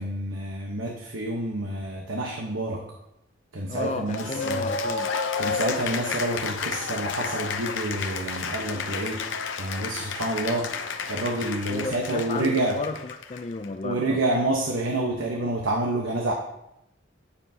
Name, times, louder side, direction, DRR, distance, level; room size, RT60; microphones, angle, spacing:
voice 1, 0.0-2.8 3.5-4.7 5.4-9.3 9.6-10.7 11.1-12.8 13.8-16.3, right 1 dB, 85° right, 0 dB, 1.2 m, -28 dB
voice 2, 3.7-5.1 11.7-14.2, left 3 dB, 35° left, 7 dB, 0.5 m, -33 dB
Cheering / Applause, 4.1-13.7, left 5 dB, 75° left, 0.8 m, -31 dB
16.5 x 7.2 x 2.8 m, 0.86 s
head